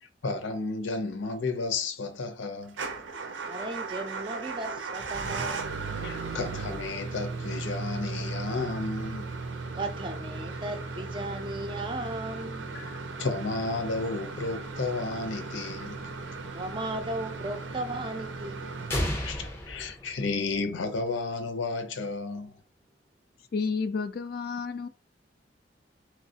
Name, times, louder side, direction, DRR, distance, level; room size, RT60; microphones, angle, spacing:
voice 1, 0.0-2.8 5.9-9.3 12.7-16.1 19.2-22.6, left 3 dB, 90° left, 0.6 m, -32 dB
Motor vehicle (road) / Engine starting / Idling, 2.7-19.7, right 3 dB, 85° right, 0.6 m, -36 dB
voice 2, 3.5-5.8 9.7-12.7 16.5-18.7, right 2 dB, 25° right, 0.4 m, -36 dB
sound 1, 18.9-20.8, left 1 dB, 15° left, 0.6 m, -33 dB
voice 3, 23.5-24.9, left 4 dB, 55° left, 0.4 m, -31 dB
3.1 x 3.0 x 2.7 m
head